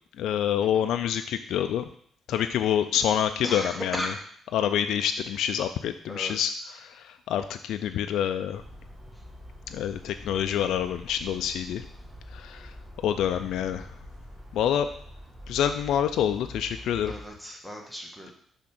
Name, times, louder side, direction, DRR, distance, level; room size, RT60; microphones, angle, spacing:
voice 1, 0.2-1.9 2.3-4.1 4.5-8.6 9.7-11.8 12.3-12.7 13.0-14.0 14.5-14.9 15.5-17.1, left 9 dB, 80° left, 8 dB, 0.3 m, -27 dB
voice 2, 3.4-4.2 6.1-6.5 17.1-18.3, equal, 5° left, 0 dB, 1.3 m, -36 dB
sound 1, 8.5-17.3, equal, 10° right, 1.5 m, -45 dB
6.1 x 3.5 x 5.9 m, 0.62 s
cardioid pair, 90°, 0 cm